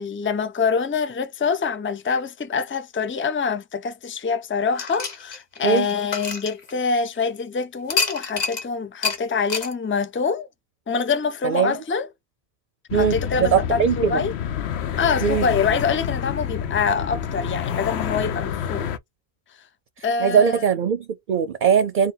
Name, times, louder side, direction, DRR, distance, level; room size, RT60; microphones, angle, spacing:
voice 1, 0.0-10.5 10.9-12.1 12.9-14.3 15.0-18.9 20.0-20.6, left 5 dB, 20° left, 0.3 m, -25 dB
sound 1, 4.8-7.2 7.9-8.7 9.0-9.2 9.5-9.7, left 5 dB, 45° left, 1.0 m, -27 dB
voice 2, 11.4-11.8 12.9-14.2 15.2-15.5 20.0-22.1, right 7 dB, 55° right, 0.7 m, -21 dB
sound 2, 12.9-19.0, left 8 dB, 80° left, 0.9 m, -28 dB
3.7 x 2.2 x 3.9 m
omnidirectional pair, 1.1 m